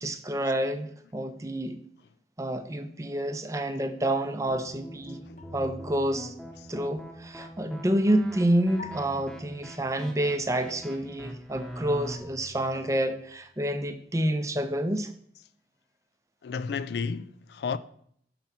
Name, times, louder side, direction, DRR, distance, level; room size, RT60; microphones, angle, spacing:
voice 1, 0.0-1.8 2.4-5.2 5.5-6.3 6.7-15.1, right 1 dB, 15° right, 0.5 m, -28 dB
sound 1, 4.5-12.1, equal, 5° left, 1.0 m, -43 dB
sound 2, 5.4-7.0 8.8-10.2 12.1-13.4, left 3 dB, 40° left, 0.7 m, -47 dB
voice 2, 16.4-17.8, left 5 dB, 65° left, 0.3 m, -32 dB
5.9 x 5.4 x 5.8 m
head